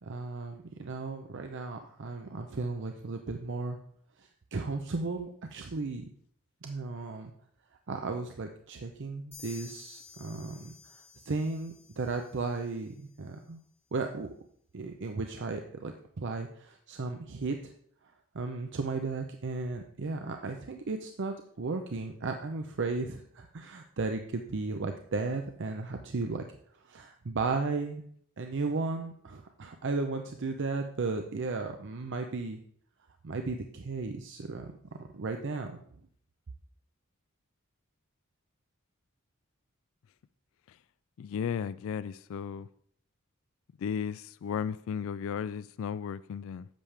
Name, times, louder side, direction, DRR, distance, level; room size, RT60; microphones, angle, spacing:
voice 1, 0.0-3.8 4.2-6.1 6.6-7.3 7.9-11.0 11.3-13.6 13.9-14.3 14.7-17.7 18.3-26.4 26.8-28.0 28.4-32.6 33.2-34.7 35.1-35.8, right 3 dB, 60° right, 0.6 m, -35 dB
sound 1, 9.3-12.9, left 5 dB, 25° left, 3.9 m, -52 dB
voice 2, 41.2-42.7 43.8-46.7, left 7 dB, 65° left, 0.3 m, -34 dB
10.5 x 7.3 x 3.3 m
head